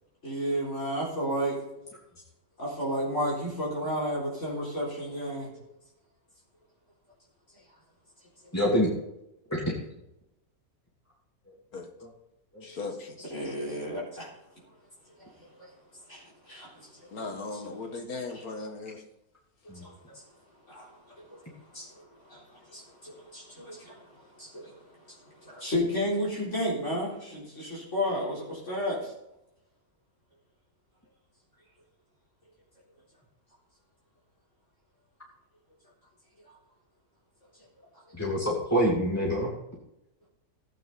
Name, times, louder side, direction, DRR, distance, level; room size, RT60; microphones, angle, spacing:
voice 1, 0.2-1.6 2.6-5.5 13.3-14.3 15.2-15.3 15.6-15.7 16.1-17.6 18.3-18.4 19.7-20.2 20.7-20.9 21.2-21.4 21.7-29.1, equal, 50° left, -6 dB, 4.4 m, -33 dB
voice 2, 8.5-8.9 9.5-9.6 12.5-12.6 19.7-19.8 21.7-21.8 38.2-39.5, equal, 10° left, -5 dB, 2.7 m, -26 dB
voice 3, 12.6-13.2 17.1-19.0, left 3 dB, 75° left, 5 dB, 2.1 m, -37 dB
16.5 x 9.1 x 4.2 m, 0.86 s
omnidirectional pair, 1.6 m